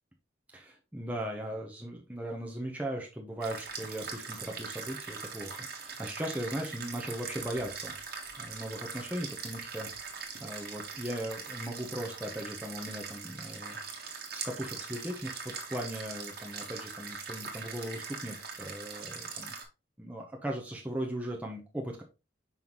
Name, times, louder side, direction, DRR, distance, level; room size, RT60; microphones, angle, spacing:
voice 1, 0.5-7.9 8.4-9.9 10.4-19.5 20.0-22.0, right 1 dB, 5° right, 0 dB, 0.8 m, -38 dB
sound 1, 3.4-19.6, right 5 dB, 50° right, 1.4 m, -41 dB
5.6 x 5.5 x 3.0 m, 0.28 s
head